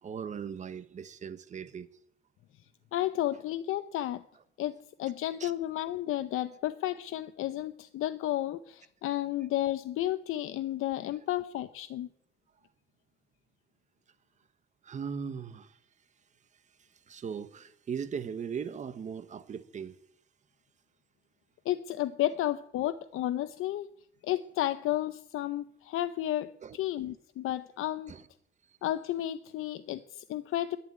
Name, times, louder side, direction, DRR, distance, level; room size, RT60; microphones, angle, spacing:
voice 1, 0.0-1.9 5.4-5.5 14.8-15.8 17.1-20.0 26.6-26.8 28.1-28.2 28.7-28.8, right 7 dB, 35° right, 1.0 m, -38 dB
voice 2, 2.9-4.2 4.6-12.1 21.7-23.9 24.2-28.1 28.8-30.8, left 13 dB, 85° left, 0.7 m, -32 dB
11.0 x 9.9 x 9.8 m
cardioid pair, 160°, 21 cm